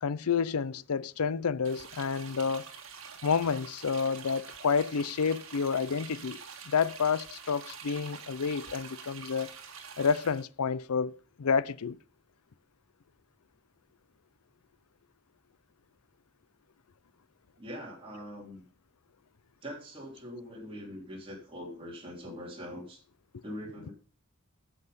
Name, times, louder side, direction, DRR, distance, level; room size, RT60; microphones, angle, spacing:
voice 1, 0.0-2.7 3.2-9.5 10.0-12.0, left 6 dB, 80° left, 0.6 m, -29 dB
sound 1, 1.6-10.4, right 6 dB, 60° right, 1.9 m, -46 dB
voice 2, 17.6-18.6 19.6-23.0 23.4-23.9, equal, 25° right, 3.2 m, -42 dB
9.6 x 7.8 x 5.1 m
head